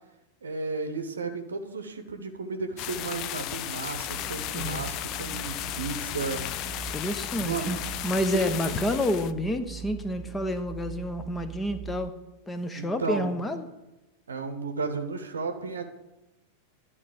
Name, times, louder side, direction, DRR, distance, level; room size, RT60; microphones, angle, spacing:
voice 1, 0.4-6.4 7.4-7.7 8.3-8.7 12.7-13.3 14.3-15.8, right 4 dB, 70° right, 7 dB, 0.8 m, -33 dB
sound 1, 2.8-9.3, left 13 dB, 40° left, 0.4 m, -34 dB
sound 2, 4.0-12.1, right 11 dB, 30° right, 0.4 m, -42 dB
voice 2, 4.5-4.9 6.9-7.8 8.0-12.1 12.5-13.7, left 1 dB, 10° left, 9 dB, 0.8 m, -29 dB
11.5 x 4.0 x 7.6 m, 1.0 s
figure-of-eight pair, 90°, 0 cm